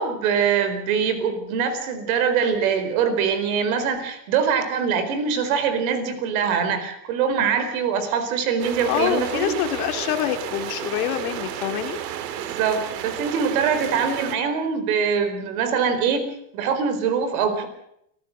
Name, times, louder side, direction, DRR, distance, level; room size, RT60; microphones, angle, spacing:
voice 1, 0.0-9.5 12.3-16.2 16.5-17.7, right 6 dB, 55° right, 10 dB, 4.4 m, -23 dB
sound 1, 8.6-14.4, right 10 dB, 80° right, 2.5 m, -32 dB
voice 2, 8.9-12.0, left 11 dB, 60° left, 7 dB, 2.5 m, -26 dB
25.5 x 15.0 x 7.7 m, 0.75 s
supercardioid pair, 175°, 50 cm